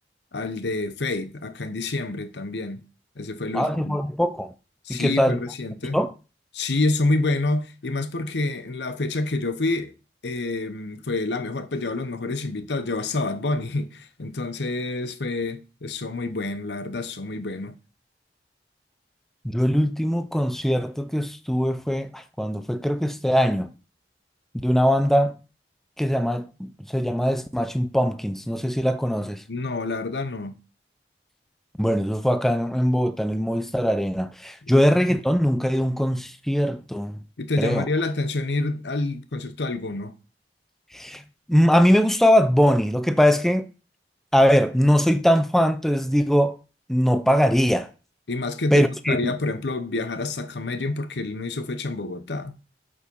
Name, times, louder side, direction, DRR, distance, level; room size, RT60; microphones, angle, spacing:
voice 1, 0.3-2.8 3.2-4.0 4.8-6.0 6.5-9.9 10.2-17.7 29.5-30.5 37.4-40.1 48.3-52.5, left 2 dB, 75° left, 0.9 m, -28 dB
voice 2, 3.5-4.5 4.9-5.4 5.9-6.1 19.4-23.7 24.5-25.4 26.0-29.4 31.8-37.2 37.6-37.8 40.9-41.2 41.5-43.7 44.3-46.6 46.9-47.9 48.7-49.3, equal, ahead, 0.5 m, -21 dB
8.4 x 5.1 x 5.4 m
head